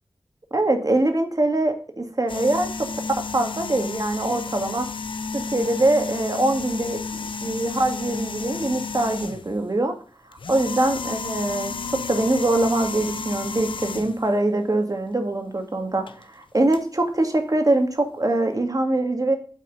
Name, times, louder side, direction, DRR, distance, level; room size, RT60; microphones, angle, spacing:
voice 1, 0.5-2.7 3.2-4.9 5.3-7.0 7.4-9.9 10.5-19.4, right 2 dB, 45° right, 5 dB, 1.9 m, -23 dB
sound 1, 2.3-9.6 10.3-14.3 16.1-16.2 16.7-16.8, left 4 dB, 70° left, 0.7 m, -32 dB
8.7 x 4.2 x 6.6 m, 0.42 s
cardioid pair, 45°, 9 cm